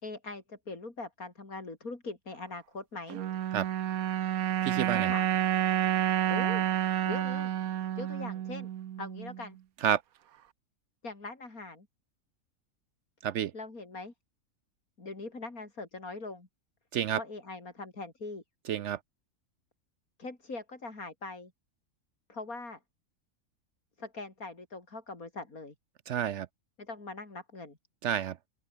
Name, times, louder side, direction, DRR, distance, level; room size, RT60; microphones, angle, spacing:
voice 1, 0.0-3.2 4.9-5.3 6.3-6.7 7.1-7.5 8.0-8.7 9.0-9.6 11.0-11.9 13.5-14.1 15.0-16.5 17.1-18.4 20.2-21.5 22.3-22.8 24.0-25.7 26.8-27.8, left 3 dB, 80° left, 4.8 m, -41 dB
sound 1, 3.1-9.5, right 11 dB, 85° right, 1.3 m, -30 dB
voice 2, 4.6-5.1 9.8-10.0 13.2-13.5 16.9-17.2 18.7-19.0 26.1-26.5 28.0-28.4, right 10 dB, 65° right, 0.8 m, -29 dB
open air
omnidirectional pair, 1.5 m